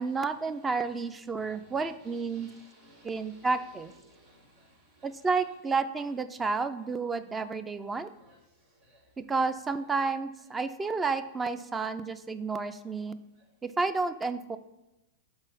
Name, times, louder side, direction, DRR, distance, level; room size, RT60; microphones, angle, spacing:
voice 1, 0.0-2.5 3.0-3.9 5.0-8.1 9.2-13.2 13.6-14.6, right 4 dB, 20° right, 12 dB, 0.4 m, -31 dB
voice 2, 1.4-3.7 4.0-5.1 7.2-7.4 8.2-9.1, right 1 dB, 65° right, -7 dB, 1.6 m, -58 dB
5.3 x 3.7 x 5.4 m, 0.97 s
hypercardioid pair, 105°, 0 cm